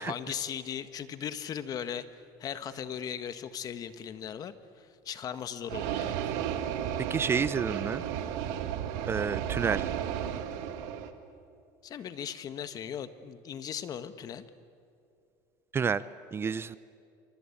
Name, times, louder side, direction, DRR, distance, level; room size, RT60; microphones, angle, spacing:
voice 1, 0.0-2.1 2.4-6.2 11.8-14.4, left 8 dB, 40° left, 11 dB, 1.5 m, -38 dB
sound 1, 5.7-11.1, right 9 dB, 75° right, 2.0 m, -33 dB
voice 2, 7.1-8.0 9.1-9.9 15.7-16.0 16.3-16.8, right 6 dB, 25° right, 16 dB, 0.7 m, -29 dB
27.0 x 24.5 x 8.7 m, 2.4 s
supercardioid pair, 105°, 9 cm